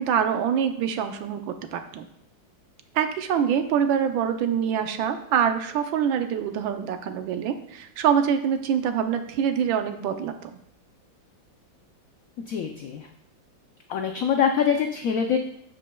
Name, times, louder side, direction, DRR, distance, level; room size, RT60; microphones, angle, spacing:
voice 1, 0.0-2.1 2.9-10.6, right 8 dB, 85° right, 7 dB, 1.4 m, -25 dB
voice 2, 12.5-13.1 13.9-15.4, left 7 dB, 75° left, 4 dB, 0.7 m, -24 dB
14.0 x 5.2 x 2.3 m, 0.76 s
omnidirectional pair, 2.1 m